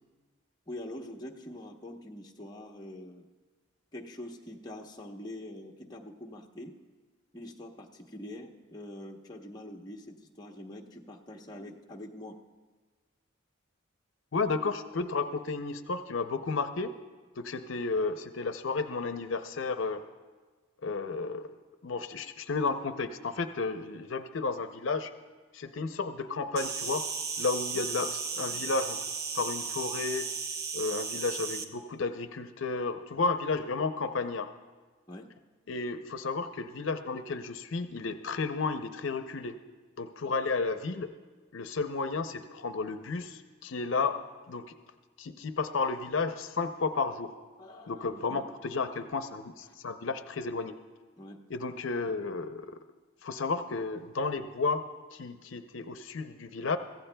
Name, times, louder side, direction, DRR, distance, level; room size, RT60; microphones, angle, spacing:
voice 1, 0.7-3.2 3.9-6.8 7.3-12.4 27.7-27.8 35.1-35.3 47.6-48.4 49.7-49.8 51.2-51.4, left 1 dB, 20° left, -1 dB, 0.9 m, -44 dB
voice 2, 14.3-16.9 17.4-20.0 20.8-21.5 21.8-25.1 25.5-27.0 27.4-29.0 29.3-30.3 30.7-34.5 35.7-39.6 40.0-41.1 41.5-44.2 44.5-44.7 45.2-47.3 47.9-50.8 51.5-52.8 53.2-56.8, left 4 dB, 75° left, 9 dB, 0.6 m, -32 dB
Insect, 26.6-31.6, right 5 dB, 50° right, 0.7 m, -35 dB
24.0 x 15.5 x 2.2 m, 1.3 s
head